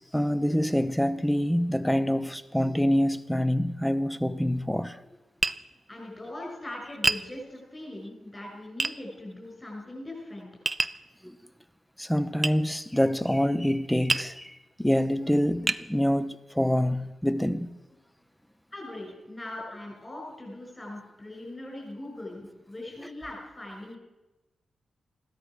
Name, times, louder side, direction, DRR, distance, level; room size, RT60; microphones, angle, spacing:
voice 1, 0.1-5.0 11.2-11.4 12.0-17.7 23.0-23.1, equal, 5° left, 0.9 m, -26 dB
Tap, 5.4-5.6 7.0-7.3 8.8-9.0 10.7-11.0 12.4-12.6 14.1-14.3 15.0-15.1 15.7-15.9, right 2 dB, 30° right, 0.6 m, -26 dB
voice 2, 5.9-10.5 18.7-24.0, left 1 dB, 25° left, 6.2 m, -40 dB
15.0 x 13.0 x 6.3 m
cardioid pair, 55°, 0 cm